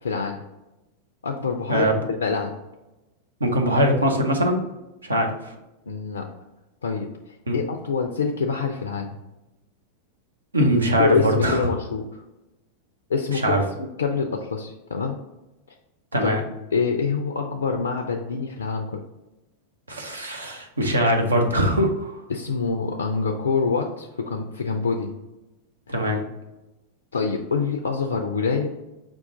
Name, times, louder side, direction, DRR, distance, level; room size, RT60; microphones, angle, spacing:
voice 1, 0.0-0.4 1.2-1.9 2.2-2.5 5.9-6.3 6.8-7.1 7.5-9.2 11.0-12.0 13.1-15.2 16.2-16.3 16.7-19.0 22.3-25.1 27.1-28.7, left 5 dB, 70° left, 3 dB, 0.4 m, -25 dB
voice 2, 3.4-4.6 5.0-5.5 7.5-7.6 10.5-11.6 13.3-13.6 16.1-16.4 19.9-22.2 25.9-26.2, equal, 75° right, 3 dB, 0.7 m, -22 dB
5.3 x 2.4 x 3.7 m, 1.0 s
figure-of-eight pair, 90°, 0 cm